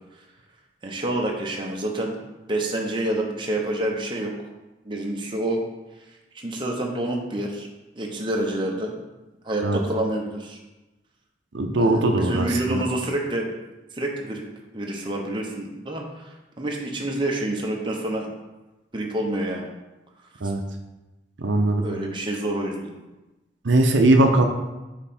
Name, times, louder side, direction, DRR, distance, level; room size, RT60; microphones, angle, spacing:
voice 1, 0.8-2.2 2.5-4.3 4.8-5.6 6.1-7.7 8.0-8.9 9.4-10.6 11.8-13.5 13.9-14.4 14.7-18.3 18.9-19.7 20.4-20.5 21.8-22.9, right 1 dB, 25° right, 0 dB, 0.8 m, -28 dB
voice 2, 11.5-12.8 20.4-20.6 21.4-21.8 23.6-24.4, right 2 dB, 75° right, 3 dB, 0.7 m, -19 dB
5.7 x 5.0 x 4.3 m, 1.1 s
head